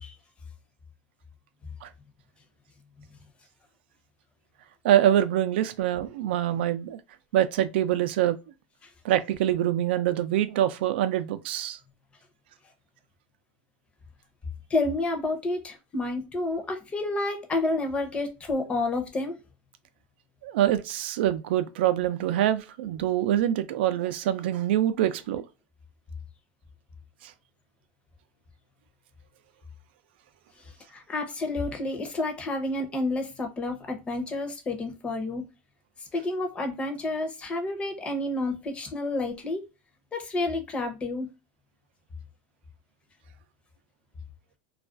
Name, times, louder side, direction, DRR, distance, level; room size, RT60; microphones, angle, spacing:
voice 1, 4.8-7.0 7.3-8.4 9.0-11.8 20.4-25.4, right 12 dB, 85° right, 0.4 m, -25 dB
voice 2, 14.7-19.4 30.9-35.4 36.1-39.7 40.1-41.3, left 2 dB, 20° left, 0.6 m, -30 dB
2.4 x 2.2 x 2.3 m
supercardioid pair, 145°, 6 cm